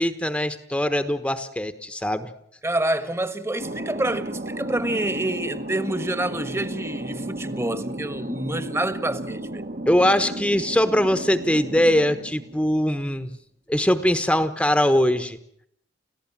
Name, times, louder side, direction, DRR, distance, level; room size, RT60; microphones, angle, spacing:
voice 1, 0.0-2.3 9.9-13.3 13.7-15.4, equal, 5° left, 1.1 m, -21 dB
voice 2, 2.6-9.6, right 1 dB, 15° right, 1.5 m, -27 dB
Thunder, 3.6-12.9, right 1 dB, 55° right, 1.8 m, -34 dB
29.5 x 15.5 x 7.4 m
head